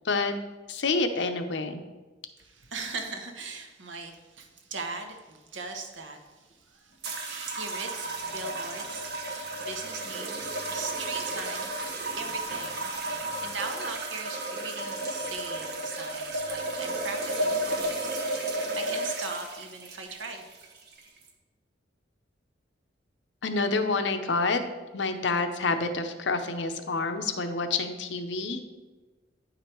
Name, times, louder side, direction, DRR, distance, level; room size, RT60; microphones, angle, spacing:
voice 1, 0.7-1.8 23.4-24.6 24.9-28.6, left 3 dB, 70° left, 8 dB, 0.7 m, -28 dB
voice 2, 2.4-11.9 12.1-20.4, right 4 dB, 80° right, 4 dB, 1.1 m, -40 dB
sound 1, 7.0-21.3, right 1 dB, 60° right, 1.2 m, -33 dB
9.4 x 5.0 x 4.5 m, 1.2 s
head